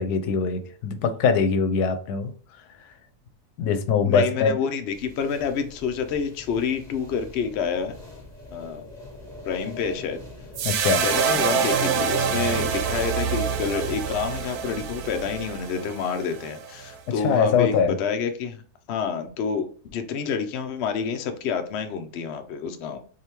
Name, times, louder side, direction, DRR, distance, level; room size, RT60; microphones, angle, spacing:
voice 1, 0.0-2.3 3.6-4.5 10.6-11.0 17.2-17.9, left 5 dB, 85° left, 1.1 m, -22 dB
voice 2, 4.1-8.0 8.5-8.9 9.4-10.2 11.0-18.6 18.9-23.0, left 6 dB, 65° left, 0.7 m, -28 dB
sound 1, 4.9-15.5, left 1 dB, ahead, 1.4 m, -43 dB
sound 2, 10.6-16.9, right 6 dB, 80° right, 1.1 m, -26 dB
4.9 x 2.6 x 2.9 m
omnidirectional pair, 1.6 m